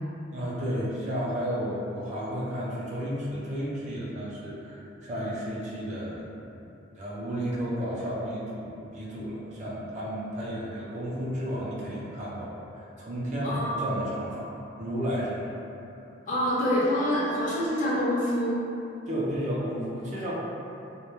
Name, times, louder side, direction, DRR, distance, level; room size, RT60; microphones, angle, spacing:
voice 1, 0.3-6.6 6.9-15.5 19.1-20.4, equal, 40° right, -7 dB, 0.4 m, -32 dB
voice 2, 13.4-13.7 16.3-18.6, equal, 40° left, -7 dB, 0.5 m, -26 dB
2.1 x 2.1 x 2.9 m, 2.8 s
head